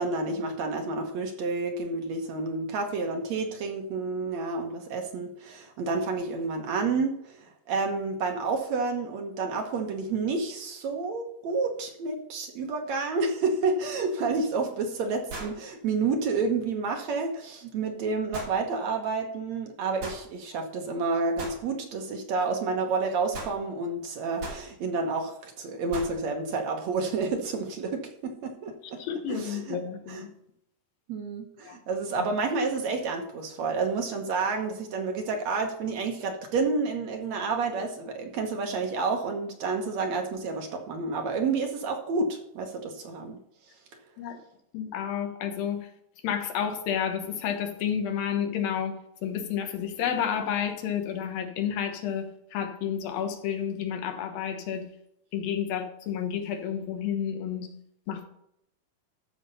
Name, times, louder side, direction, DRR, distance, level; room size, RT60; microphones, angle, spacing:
voice 1, 0.0-29.0 29.3-29.8 30.1-30.2 31.1-43.4, right 4 dB, 65° right, 4 dB, 2.1 m, -30 dB
sound 1, 14.1-14.2 15.3-15.6 18.3-18.6 20.0-20.2 21.4-21.6 23.3-23.6 24.4-24.7 25.9-26.2, right 2 dB, 40° right, 3.6 m, -37 dB
voice 2, 29.0-30.3 31.6-31.8 32.2-32.3 44.2-44.4 44.7-45.8 46.2-49.0 49.2-54.8 55.3-57.7 58.1-58.3, left 8 dB, 90° left, 6 dB, 3.2 m, -30 dB
13.0 x 5.6 x 5.4 m, 0.76 s
omnidirectional pair, 4.0 m